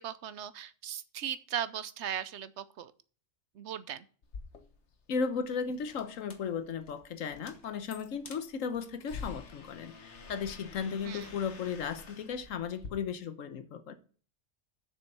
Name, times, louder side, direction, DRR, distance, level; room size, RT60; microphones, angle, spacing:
voice 1, 0.0-2.9 3.5-4.0 11.0-11.3, right 9 dB, 65° right, 0.8 m, -38 dB
sound 1, 4.2-12.9, left 5 dB, 60° left, 1.4 m, -48 dB
voice 2, 5.1-13.9, left 6 dB, 80° left, 1.2 m, -35 dB
7.3 x 6.2 x 6.7 m
omnidirectional pair, 1.4 m